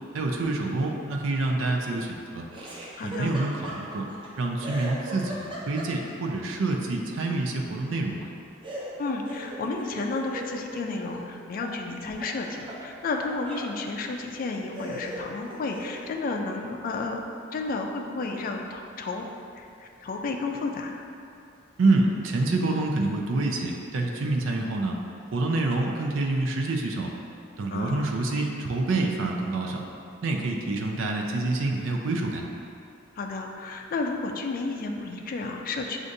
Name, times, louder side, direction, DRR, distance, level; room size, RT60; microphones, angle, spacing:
voice 1, 0.1-2.5 3.0-4.1 4.4-8.3 21.8-24.9 25.3-27.1 27.6-29.8 30.2-32.4, right 2 dB, 85° right, 1 dB, 0.4 m, -27 dB
Laughter, 2.5-4.3 4.6-6.3 8.6-11.8 12.1-13.7 14.3-14.4 14.7-16.1, right 1 dB, 25° right, 0.6 m, -39 dB
voice 2, 3.0-3.3 9.0-17.2 17.5-19.3 19.6-20.9 27.7-28.1 33.2-36.0, left 3 dB, 45° left, 2 dB, 0.3 m, -32 dB
6.4 x 2.5 x 2.6 m, 2.6 s
head